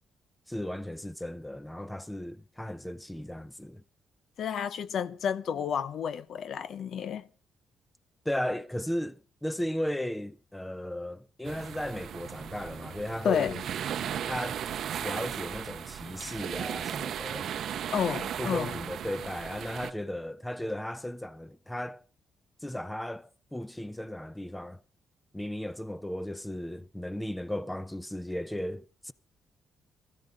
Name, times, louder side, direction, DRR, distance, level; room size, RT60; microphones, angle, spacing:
voice 1, 0.5-3.8 8.2-13.6 14.3-14.7 15.0-17.5 18.4-22.0 22.6-24.8 25.3-29.1, left 1 dB, 5° left, 0.7 m, -36 dB
voice 2, 4.4-7.2 13.2-13.5 17.9-18.7, left 8 dB, 65° left, 0.6 m, -30 dB
sound 1, 11.4-19.9, right 9 dB, 65° right, 0.7 m, -36 dB
17.0 x 14.5 x 4.0 m
cardioid pair, 90°, 0 cm